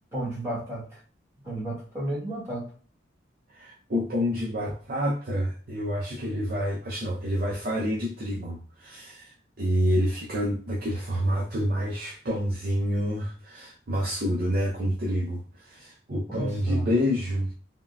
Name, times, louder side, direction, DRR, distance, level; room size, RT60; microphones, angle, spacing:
voice 1, 0.1-1.0 1.4-2.7 16.3-16.9, right 1 dB, 15° right, 1.2 m, -33 dB
voice 2, 3.5-17.5, equal, 45° right, 0.5 m, -28 dB
3.6 x 2.1 x 2.2 m
head